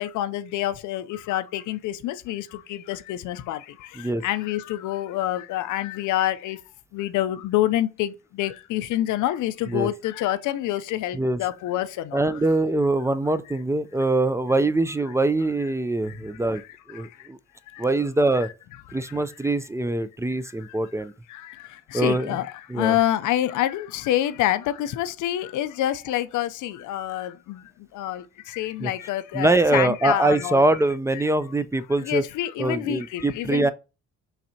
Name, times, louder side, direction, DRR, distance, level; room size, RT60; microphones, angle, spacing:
voice 1, 0.0-3.6 4.2-6.6 6.9-12.2 21.3-21.5 21.9-27.6 27.9-30.6 31.1-31.2 32.0-33.7, left 13 dB, 80° left, 0.5 m, -27 dB
voice 2, 12.1-16.6 16.9-17.4 17.8-18.5 18.9-21.1 21.9-22.4 22.7-23.0 28.8-28.9 29.3-32.2 32.6-33.7, right 2 dB, 10° right, 0.3 m, -23 dB
5.7 x 3.3 x 2.7 m
cardioid pair, 90°, 30 cm